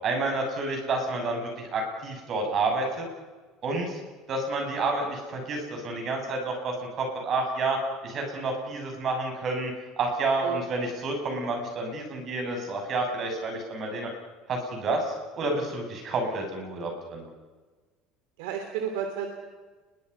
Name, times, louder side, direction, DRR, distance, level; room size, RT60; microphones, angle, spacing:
voice 1, 0.0-3.1 3.6-4.0 4.3-14.1 14.5-17.3, right 2 dB, 40° right, 3 dB, 7.5 m, -29 dB
voice 2, 18.4-19.3, right 7 dB, 90° right, 4 dB, 2.9 m, -32 dB
30.0 x 23.0 x 5.6 m, 1.3 s
cardioid pair, 145°, 0 cm